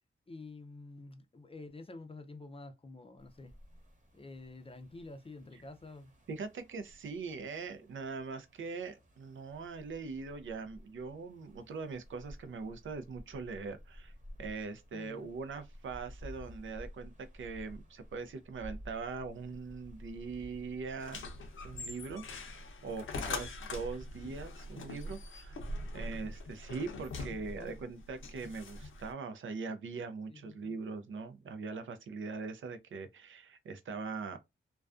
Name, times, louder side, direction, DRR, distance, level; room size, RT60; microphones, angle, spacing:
voice 1, 0.3-3.6 4.1-6.1 14.9-15.3 23.1-23.4 27.3-27.8 30.3-30.8, left 2 dB, 25° left, 0.5 m, -49 dB
sound 1, 3.2-22.0, equal, 35° right, 1.0 m, -53 dB
voice 2, 6.3-14.1 14.4-21.2 21.6-25.6 25.9-34.4, right 4 dB, 70° right, 0.5 m, -41 dB
sound 2, 21.0-29.1, left 2 dB, 70° left, 0.6 m, -43 dB
2.3 x 2.2 x 2.4 m
cardioid pair, 55°, 21 cm